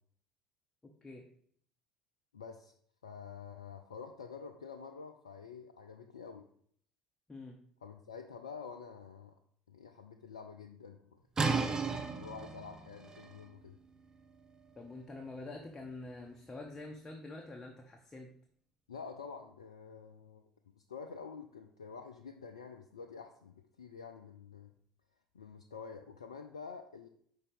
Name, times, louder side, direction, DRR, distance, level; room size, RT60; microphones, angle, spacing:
voice 1, 0.8-1.3 7.3-7.6 14.8-18.3, left 2 dB, 15° left, 1 dB, 0.8 m, -46 dB
voice 2, 2.3-2.7 3.0-6.5 7.8-9.3 9.7-11.2 12.1-13.8 18.9-20.4 20.9-24.7 25.3-27.1, left 5 dB, 80° left, 5 dB, 0.4 m, -48 dB
sound 1, 11.4-17.0, right 4 dB, 25° right, 0.7 m, -38 dB
5.5 x 3.6 x 5.2 m, 0.62 s
figure-of-eight pair, 65°, 3 cm